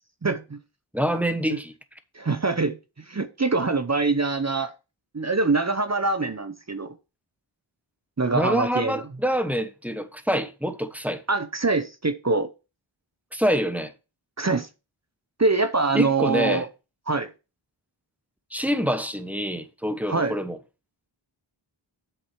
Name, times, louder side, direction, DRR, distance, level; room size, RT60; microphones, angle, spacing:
voice 1, 0.2-0.6 1.5-1.6 2.1-2.8 3.1-4.7 5.1-6.9 8.2-9.0 11.3-12.5 14.4-14.7 15.4-16.7 17.1-17.3 20.1-20.3, right 3 dB, 35° right, 0.8 m, -24 dB
voice 2, 0.9-1.7 8.3-11.2 13.3-13.9 15.9-16.6 18.5-20.6, equal, 5° right, 1.1 m, -26 dB
7.8 x 6.7 x 4.4 m
wide cardioid pair, 45°, 48 cm